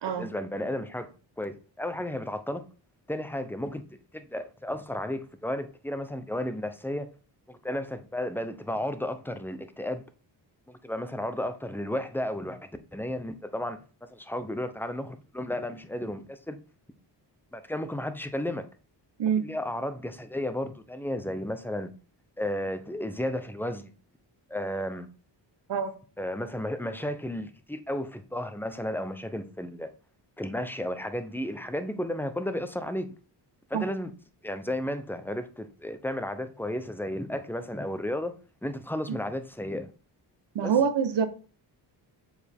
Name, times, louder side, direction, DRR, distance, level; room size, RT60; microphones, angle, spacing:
voice 1, 0.1-1.1 1.4-2.6 3.1-3.8 4.1-7.1 7.5-10.0 10.7-12.6 12.9-13.8 14.1-16.6 17.5-18.7 19.4-21.9 22.4-23.9 24.5-25.1 26.2-29.9 30.4-33.1 33.7-34.1 34.4-38.3 38.6-39.9 40.6-40.7, left 1 dB, 5° left, 0.8 m, -33 dB
voice 2, 40.5-41.3, right 7 dB, 70° right, 1.1 m, -25 dB
7.2 x 4.4 x 3.6 m
cardioid pair, 75°, 44 cm